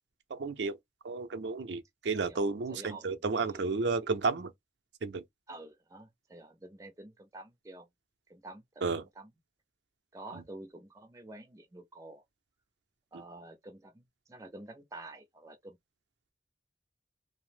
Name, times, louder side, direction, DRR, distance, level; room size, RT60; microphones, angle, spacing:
voice 1, 0.3-0.8 1.0-4.5 5.0-5.2 8.8-9.0 10.3-10.4 13.1-13.2, right 4 dB, 75° right, 0.6 m, -32 dB
voice 2, 2.1-3.6 5.5-7.9 8.3-8.6 9.2-9.3 10.1-12.2 13.1-15.8, right 2 dB, 20° right, 0.4 m, -49 dB
2.8 x 2.0 x 3.1 m
head